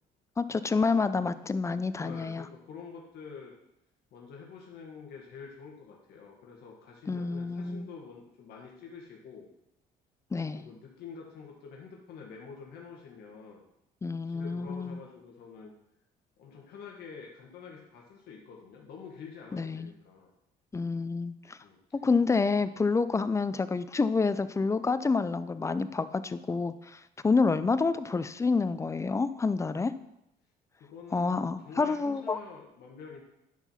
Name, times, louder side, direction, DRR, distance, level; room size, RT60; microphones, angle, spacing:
voice 1, 0.4-2.5 7.1-7.9 10.3-10.6 14.0-15.0 19.5-19.9 20.7-21.6 22.0-29.9 31.1-32.4, left 4 dB, 15° left, 13 dB, 0.5 m, -28 dB
voice 2, 2.0-3.5 4.1-9.5 10.5-13.6 14.3-15.7 16.4-20.3 21.6-21.8 30.8-33.2, left 5 dB, 70° left, -1 dB, 1.8 m, -47 dB
10.5 x 4.6 x 5.7 m, 0.84 s
cardioid pair, 110°, 17 cm